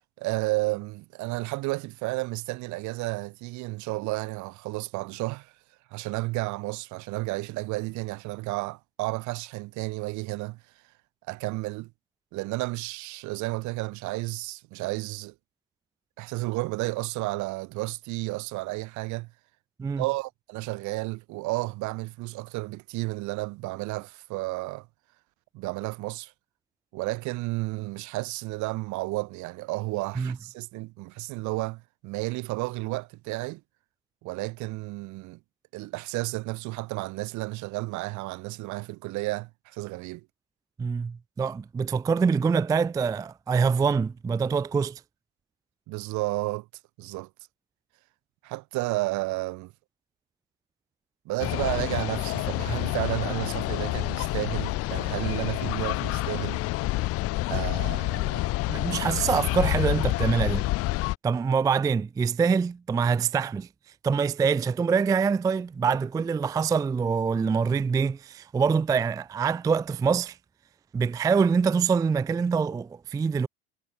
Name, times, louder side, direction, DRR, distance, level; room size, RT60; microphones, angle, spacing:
voice 1, 0.2-5.5 5.9-10.6 11.3-11.9 12.3-15.3 16.2-19.3 20.0-24.9 25.5-26.3 26.9-33.6 34.2-35.4 35.7-40.3 45.9-46.7 47.0-47.3 48.4-49.7 51.2-56.6 57.5-58.5, right 22 dB, 60° right, 1.0 m, -32 dB
voice 2, 40.8-45.0 58.7-60.7 61.2-63.7 64.0-70.4 70.9-73.5, right 5 dB, 10° right, 0.3 m, -25 dB
sound 1, 51.4-61.2, left 19 dB, 45° left, 0.5 m, -28 dB
supercardioid pair, 95°, 33 cm